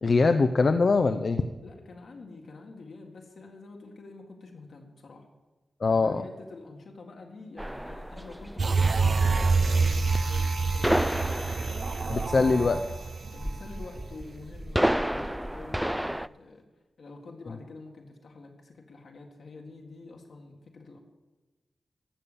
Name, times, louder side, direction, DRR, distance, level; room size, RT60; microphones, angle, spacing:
voice 1, 0.0-1.4 5.8-6.2 12.1-12.8, left 4 dB, 60° left, 7 dB, 0.6 m, -22 dB
voice 2, 1.6-5.3 5.9-11.6 12.0-12.8 13.3-16.6 17.0-21.0, left 3 dB, 75° left, 2 dB, 1.9 m, -47 dB
sound 1, 7.6-16.3, equal, 5° right, 0.3 m, -31 dB
sound 2, 8.6-14.2 14.6-14.7, right 4 dB, 60° right, 0.6 m, -26 dB
12.5 x 7.0 x 7.0 m, 1.2 s
cardioid pair, 50°, 0 cm